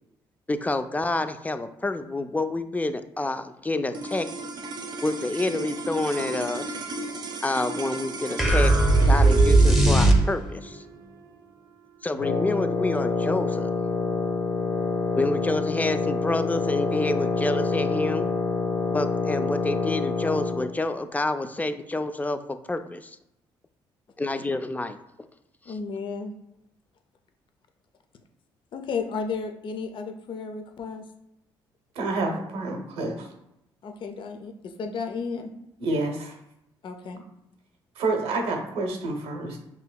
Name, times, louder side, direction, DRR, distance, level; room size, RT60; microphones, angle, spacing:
voice 1, 0.5-4.3 5.0-6.8 7.4-8.8 9.1-10.8 12.0-13.7 15.2-18.3 18.9-23.2 24.2-25.0, left 2 dB, 15° left, 9 dB, 0.4 m, -28 dB
sound 1, 3.9-14.4, right 2 dB, 45° right, 0.6 m, -36 dB
sound 2, 8.4-10.7, right 2 dB, ahead, 0.9 m, -18 dB
Wind instrument woodwind instrument, 12.2-20.7, left 4 dB, 80° left, 1.0 m, -26 dB
voice 2, 25.7-26.3 28.7-31.0 33.8-35.5 36.8-37.2, left 5 dB, 55° left, 5 dB, 0.6 m, -33 dB
voice 3, 32.0-33.3 35.8-36.3 38.0-39.6, right 2 dB, 75° right, 3 dB, 0.8 m, -28 dB
5.5 x 2.8 x 2.2 m, 0.84 s
supercardioid pair, 60°, 10 cm